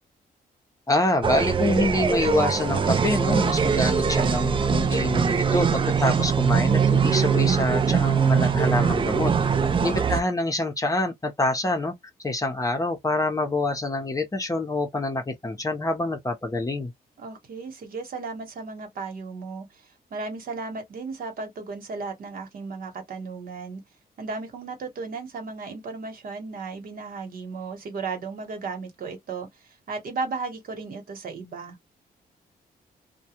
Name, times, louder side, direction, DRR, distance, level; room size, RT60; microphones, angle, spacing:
voice 1, 0.9-9.3 9.8-11.9 12.2-16.9, left 2 dB, 20° left, 0.7 m, -26 dB
sound 1, 1.2-10.2, right 6 dB, 30° right, 0.4 m, -22 dB
voice 2, 17.2-23.8 24.2-29.5 29.9-31.8, right 4 dB, 60° right, 1.1 m, -35 dB
2.3 x 2.1 x 2.8 m
cardioid pair, 105°, 16 cm